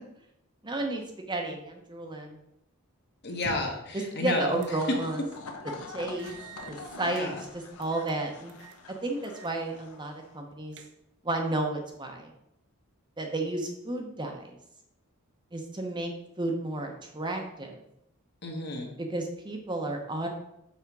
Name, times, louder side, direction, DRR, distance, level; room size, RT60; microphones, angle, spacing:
voice 1, 0.6-2.4 4.1-5.2 5.6-6.3 6.7-8.5 9.0-10.8 11.2-12.3 13.2-14.6 15.5-16.1 16.4-17.8 19.0-20.3, right 2 dB, 20° right, 2 dB, 0.8 m, -32 dB
voice 2, 3.2-4.6 7.0-7.4 18.4-18.9, left 2 dB, 50° left, 2 dB, 1.3 m, -32 dB
sound 1, 3.3-3.9 4.6-4.8 5.2-5.3 6.2-7.3 7.8-8.2 8.5-8.8 9.2-9.6 9.9-10.0 10.5-11.2, right 4 dB, 55° right, 0.7 m, -46 dB
sound 2, 4.5-10.4, left 3 dB, 75° left, 1.0 m, -45 dB
5.9 x 4.3 x 6.0 m, 0.81 s
head